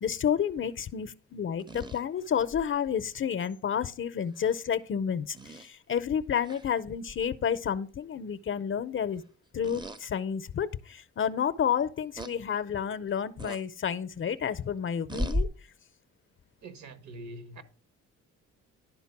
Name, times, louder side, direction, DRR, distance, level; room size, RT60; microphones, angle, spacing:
voice 1, 0.0-9.2 9.5-15.5, left 8 dB, 45° left, 0.6 m, -30 dB
sound 1, 1.6-2.7 4.4-4.5 5.3-5.7 6.5-6.7 7.1-7.3 9.6-10.0 10.6-10.7 12.2-12.3 13.4-13.6 15.1-15.5, equal, 15° right, 0.6 m, -34 dB
voice 2, 16.6-17.6, right 2 dB, 70° right, 1.5 m, -44 dB
11.0 x 4.0 x 5.9 m
cardioid pair, 90°, 30 cm